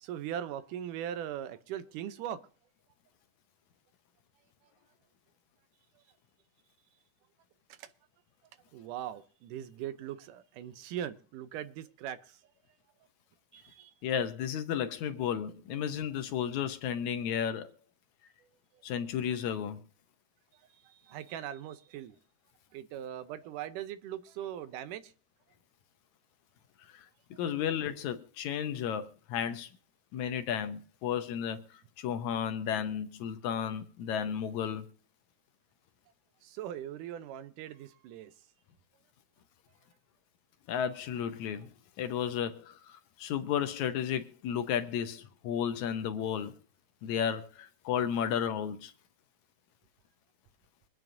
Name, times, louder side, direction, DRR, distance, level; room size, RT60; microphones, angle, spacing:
voice 1, 0.0-2.4 7.8-7.9 8.7-12.4 13.5-13.9 20.8-22.2 22.7-25.0 36.4-38.3, right 10 dB, 80° right, 2.3 m, -40 dB
voice 2, 14.0-17.7 18.8-19.8 26.9-27.1 27.4-29.7 30.1-31.6 32.0-34.9 40.7-41.7 42.0-46.6 47.0-48.9, left 8 dB, 70° left, 2.0 m, -33 dB
25.0 x 9.4 x 2.6 m
omnidirectional pair, 3.7 m